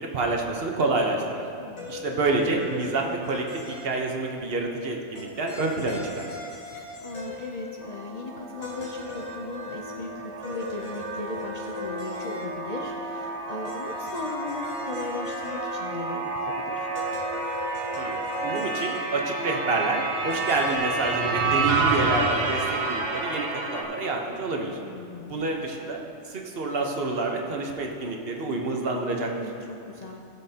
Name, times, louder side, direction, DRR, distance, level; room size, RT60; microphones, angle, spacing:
voice 1, 0.0-1.4 1.9-3.5 3.8-6.3 18.0-24.8 25.3-26.0 26.3-29.3, right 2 dB, 55° right, 1 dB, 1.1 m, -28 dB
voice 2, 1.6-2.0 6.7-16.9 24.8-25.5 29.2-30.2, left 3 dB, 50° left, 0 dB, 0.5 m, -38 dB
sound 1, 1.8-4.2 5.1-8.0 8.6-12.8 13.6-16.3 16.9-19.4 20.3-20.8, left 3 dB, 75° left, 2.1 m, -40 dB
sound 2, 7.8-23.8, right 3 dB, 70° right, 1.3 m, -30 dB
16.0 x 7.3 x 2.8 m, 2.5 s
omnidirectional pair, 1.2 m